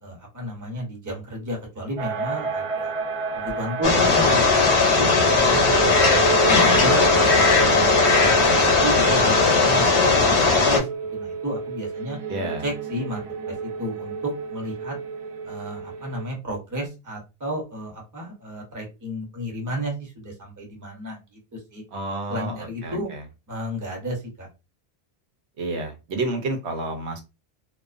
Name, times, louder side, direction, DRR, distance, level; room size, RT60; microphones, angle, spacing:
voice 1, 0.0-2.9 3.3-4.4 4.8-6.1 6.5-10.3 10.6-10.9 11.1-12.2 12.6-15.0 15.4-21.2 21.5-21.8 22.3-23.1 23.5-24.5, right 1 dB, 20° right, 0 dB, 0.8 m, -32 dB
sound 1, 2.0-16.2, right 5 dB, 55° right, 0.4 m, -29 dB
sound 2, 3.8-10.8, left 4 dB, 85° left, 1.0 m, -18 dB
voice 2, 12.3-12.6 21.9-23.2 25.6-27.2, right 2 dB, 90° right, 4 dB, 1.0 m, -30 dB
2.4 x 2.2 x 2.4 m, 0.26 s
omnidirectional pair, 1.1 m